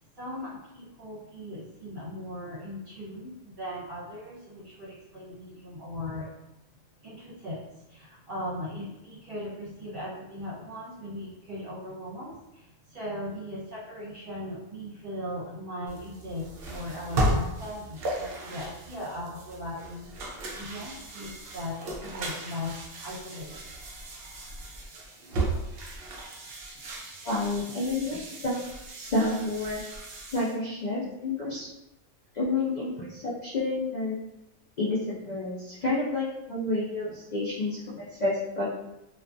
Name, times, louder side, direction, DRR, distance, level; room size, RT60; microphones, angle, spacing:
voice 1, 0.2-6.3 7.0-20.1 20.5-22.7 23.0-23.6, left 1 dB, 45° right, -9 dB, 1.3 m, -38 dB
sound 1, 15.9-30.6, right 1 dB, 65° right, 0.6 m, -35 dB
voice 2, 27.2-28.2 28.4-28.6 28.9-29.8 30.3-31.7 32.3-34.2 34.8-38.7, left 2 dB, 90° left, -8 dB, 0.3 m, -29 dB
2.4 x 2.2 x 2.5 m, 0.92 s
omnidirectional pair, 1.3 m